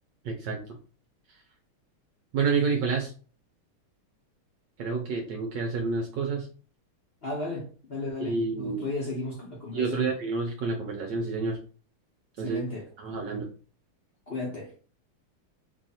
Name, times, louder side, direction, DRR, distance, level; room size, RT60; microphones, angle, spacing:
voice 1, 0.2-0.6 2.3-3.1 4.8-6.5 8.2-8.8 9.7-11.6 12.4-12.6 13.0-13.5, right 4 dB, 70° right, 1.1 m, -29 dB
voice 2, 7.2-10.1 12.4-12.9 14.3-14.7, left 2 dB, 65° left, 0.6 m, -34 dB
3.3 x 2.4 x 4.0 m
omnidirectional pair, 2.4 m